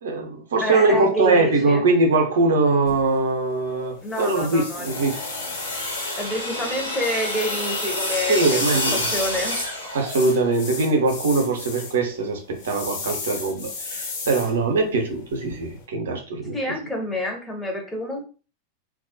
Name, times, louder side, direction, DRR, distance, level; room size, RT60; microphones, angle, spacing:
voice 1, 0.0-5.2 8.3-9.0 9.9-16.5, right 3 dB, 60° right, 0.6 m, -22 dB
voice 2, 0.6-1.8 4.0-4.9 6.2-9.6 16.5-18.2, left 1 dB, 10° left, 0.7 m, -28 dB
sound 1, 2.9-15.9, left 4 dB, 50° left, 0.6 m, -37 dB
sound 2, 4.7-10.6, left 1 dB, 80° left, 0.9 m, -28 dB
2.3 x 2.0 x 2.6 m
figure-of-eight pair, 90°, 0 cm